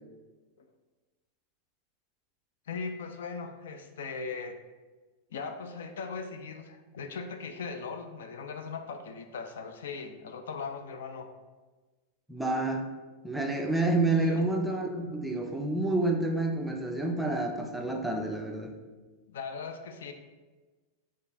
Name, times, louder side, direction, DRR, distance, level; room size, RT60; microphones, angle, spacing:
voice 1, 2.7-4.6 5.3-11.3 14.1-14.3 19.3-20.1, left 5 dB, 60° left, 7 dB, 0.3 m, -39 dB
voice 2, 12.3-12.8 13.2-18.7, right 2 dB, 5° right, 2 dB, 0.4 m, -29 dB
6.3 x 2.4 x 2.7 m, 1.3 s
figure-of-eight pair, 90°, 0 cm